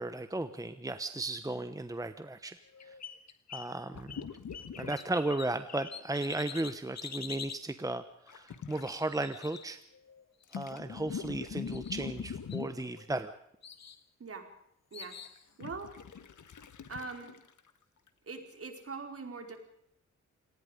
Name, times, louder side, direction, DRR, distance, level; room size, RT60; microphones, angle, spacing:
voice 1, 0.0-2.6 2.9-3.0 3.5-4.2 4.8-9.8 10.5-13.3, right 2 dB, 10° right, 10 dB, 1.1 m, -35 dB
sound 1, 2.6-3.7 4.1-7.6 8.7-10.2 11.1-11.4 11.7-12.2 12.5-13.2 13.6-14.0 14.9-15.4, left 7 dB, 60° left, 1.7 m, -46 dB
sound 2, 3.9-5.0 5.3-5.4 8.3-8.9 10.4-13.0 15.2-17.7 18.1-18.2, left 7 dB, 75° left, 1.9 m, -42 dB
voice 2, 15.6-15.9 16.9-17.4 18.3-19.6, right 4 dB, 50° right, 5 dB, 4.6 m, -42 dB
28.0 x 19.0 x 5.3 m, 0.72 s
wide cardioid pair, 110°, 30 cm